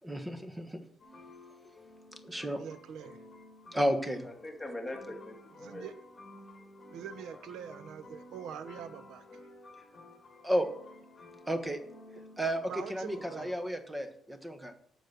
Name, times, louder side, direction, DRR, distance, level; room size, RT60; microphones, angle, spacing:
voice 1, 0.0-0.8 2.2-2.6 3.7-4.3 10.4-10.7 11.5-11.8 12.4-14.7, equal, 10° right, 8 dB, 1.2 m, -32 dB
sound 1, 1.0-13.5, left 2 dB, 35° left, 2.2 m, -53 dB
voice 2, 2.6-3.2 5.6-5.9 6.9-9.4 12.1-12.2 12.7-13.6, right 8 dB, 80° right, 12 dB, 0.9 m, -44 dB
voice 3, 4.2-5.9 6.5-6.7 7.3-7.4, left 1 dB, 10° left, 1 dB, 2.4 m, -43 dB
9.3 x 6.2 x 6.8 m, 0.69 s
cardioid pair, 90°, 0 cm